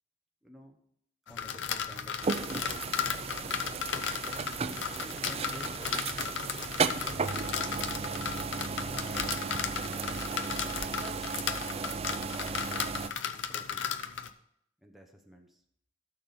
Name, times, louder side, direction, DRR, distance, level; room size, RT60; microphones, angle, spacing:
voice 1, 0.4-0.8 1.3-3.7 5.0-6.9 7.5-8.4 8.8-11.3 11.9-12.6 13.3-13.9 14.8-15.6, equal, ahead, 1 dB, 0.9 m, -52 dB
sound 1, 1.3-14.3, left 7 dB, 65° left, 0.7 m, -35 dB
sound 2, 2.2-13.1, right 5 dB, 30° right, 0.4 m, -35 dB
13.0 x 6.8 x 4.2 m, 0.71 s
head